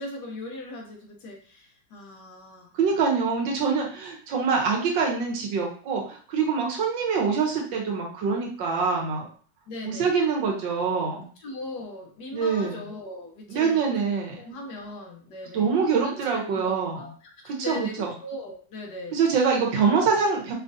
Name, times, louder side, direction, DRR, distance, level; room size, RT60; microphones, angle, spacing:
voice 1, 0.0-2.7 9.7-10.1 11.4-13.9 14.4-19.2, left 2 dB, 65° left, 1 dB, 1.4 m, -39 dB
voice 2, 2.7-9.3 9.8-11.2 12.3-12.8 13.5-14.4 15.5-17.1 17.4-18.1 19.1-20.5, right 5 dB, 80° right, 0 dB, 1.6 m, -25 dB
5.1 x 2.4 x 2.6 m, 0.43 s
omnidirectional pair, 2.0 m